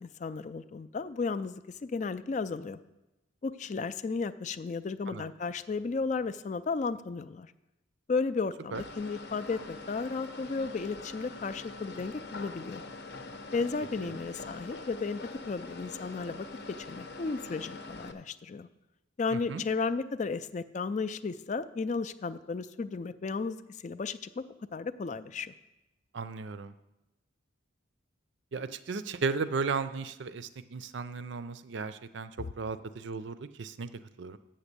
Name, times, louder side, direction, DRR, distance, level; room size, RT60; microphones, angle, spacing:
voice 1, 0.0-2.8 3.4-7.5 8.1-12.8 13.5-15.2 15.4-16.5 16.8-18.7 19.2-24.4 24.7-25.5, left 4 dB, 35° left, 12 dB, 0.3 m, -34 dB
sound 1, 8.7-18.1, left 3 dB, 55° left, 0.7 m, -44 dB
voice 2, 19.3-19.6 26.1-26.7 28.5-34.4, right 4 dB, 65° right, 12 dB, 0.5 m, -35 dB
7.8 x 7.2 x 6.7 m, 0.99 s
head